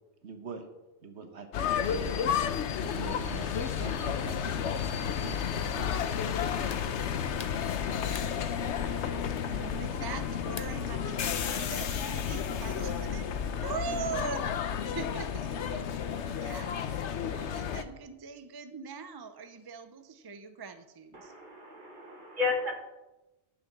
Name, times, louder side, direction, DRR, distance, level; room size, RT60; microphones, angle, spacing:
voice 1, 0.2-0.7 1.0-4.9 5.2-6.2, right 4 dB, 75° right, 6 dB, 1.4 m, -44 dB
sound 1, 1.5-17.8, left 8 dB, 90° left, 1.0 m, -32 dB
sound 2, 3.1-14.4, left 2 dB, 70° left, 2.0 m, -49 dB
sound 3, 6.7-10.9, left 5 dB, 40° left, 0.7 m, -48 dB
voice 2, 8.5-21.3, right 5 dB, 30° right, 9 dB, 0.5 m, -42 dB
voice 3, 21.1-22.7, left 4 dB, 45° right, 2 dB, 1.9 m, -33 dB
11.0 x 6.8 x 6.0 m, 0.99 s
omnidirectional pair, 1.1 m